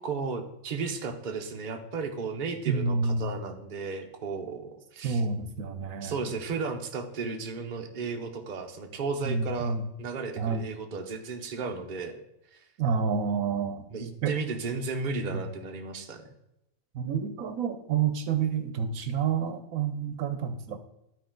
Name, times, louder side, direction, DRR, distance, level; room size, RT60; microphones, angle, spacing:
voice 1, 0.0-5.2 6.0-12.2 13.9-16.2, right 4 dB, 40° right, 4 dB, 0.9 m, -34 dB
voice 2, 2.7-3.3 5.0-6.2 9.2-9.9 10.4-10.7 12.8-13.8 14.2-14.3 15.3-15.4 16.9-20.8, right 5 dB, 75° right, 9 dB, 1.1 m, -29 dB
12.0 x 4.3 x 3.8 m, 0.86 s
omnidirectional pair, 1.4 m